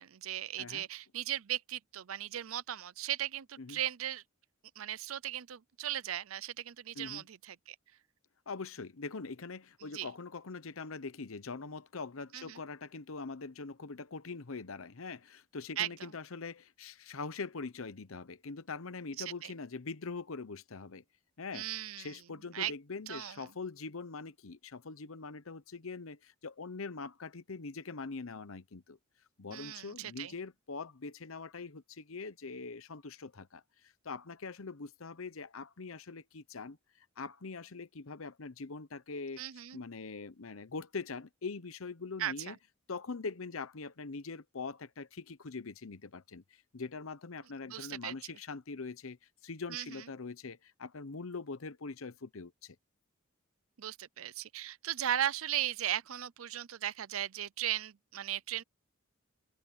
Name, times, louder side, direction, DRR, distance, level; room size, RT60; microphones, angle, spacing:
voice 1, 0.0-4.2 4.8-7.8 9.9-10.1 12.3-12.6 15.8-15.9 19.2-19.5 21.5-22.1 22.5-22.7 23.1-23.4 29.5-30.3 39.4-39.8 42.2-42.6 47.7-48.1 49.7-49.9 53.8-58.6, right 11 dB, 80° right, 0.6 m, -37 dB
voice 2, 8.5-21.0 21.4-21.7 22.0-29.0 29.4-39.4 39.7-42.6 42.9-49.2 49.4-52.8, left 4 dB, 80° left, 0.9 m, -43 dB
open air
head